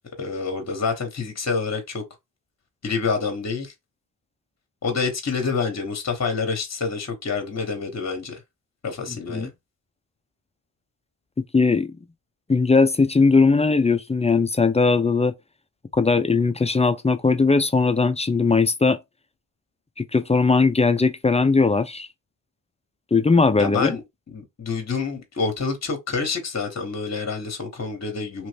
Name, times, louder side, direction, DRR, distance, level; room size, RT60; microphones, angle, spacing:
voice 1, 0.2-2.0 2.8-3.7 4.8-8.4 8.8-9.5 23.6-24.0 24.3-28.5, left 4 dB, 35° left, 1.2 m, -27 dB
voice 2, 11.5-11.9 12.5-15.3 15.9-19.0 20.0-22.1 23.1-24.0, left 4 dB, 15° left, 0.4 m, -19 dB
3.0 x 2.5 x 3.3 m
cardioid pair, 65°, 47 cm